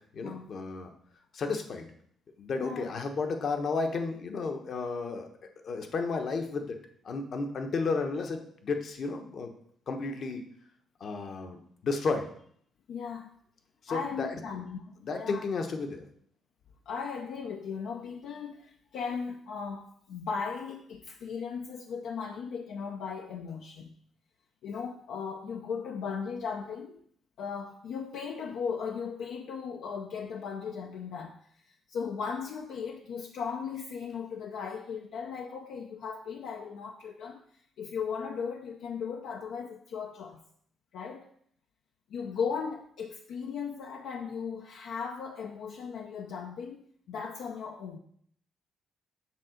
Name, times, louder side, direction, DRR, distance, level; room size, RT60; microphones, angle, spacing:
voice 1, 0.1-0.9 1.3-1.9 2.4-5.3 5.6-6.8 7.0-9.5 9.9-10.5 11.0-11.6 11.8-12.3 13.9-14.3 15.0-16.0, left 4 dB, 55° left, 5 dB, 1.0 m, -32 dB
voice 2, 2.6-2.9 12.9-13.3 13.9-15.4 16.9-23.9 24.6-27.0 27.4-31.4 31.7-37.4 37.8-40.4 40.9-41.3 42.1-48.0, left 6 dB, 80° left, 2 dB, 0.6 m, -37 dB
7.4 x 3.7 x 6.4 m, 0.63 s
cardioid pair, 90°, 0 cm